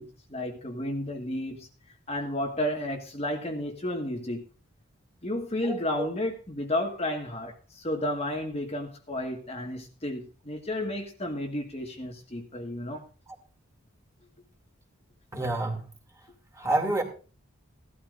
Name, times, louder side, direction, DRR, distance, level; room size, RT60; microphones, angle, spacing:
voice 1, 0.0-1.7 2.1-4.5 5.2-13.0, left 1 dB, 30° left, 1.6 m, -32 dB
voice 2, 5.6-6.1 15.3-15.8 16.6-17.0, right 2 dB, 15° right, 2.5 m, -28 dB
17.0 x 12.5 x 2.5 m
head